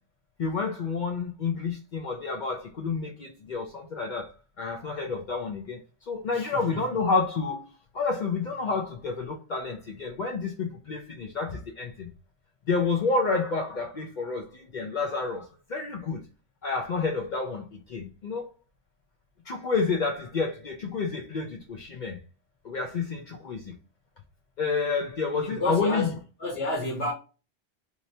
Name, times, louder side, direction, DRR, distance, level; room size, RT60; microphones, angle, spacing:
voice 1, 0.4-4.3 4.6-5.8 6.1-7.6 7.9-12.1 12.7-16.2 16.6-18.5 19.5-22.2 22.6-23.7 24.6-26.1, left 4 dB, 55° left, 0.6 m, -29 dB
voice 2, 6.3-6.8 25.4-26.1 26.4-27.1, left 1 dB, 70° left, 1.3 m, -30 dB
3.2 x 2.8 x 2.7 m
omnidirectional pair, 1.1 m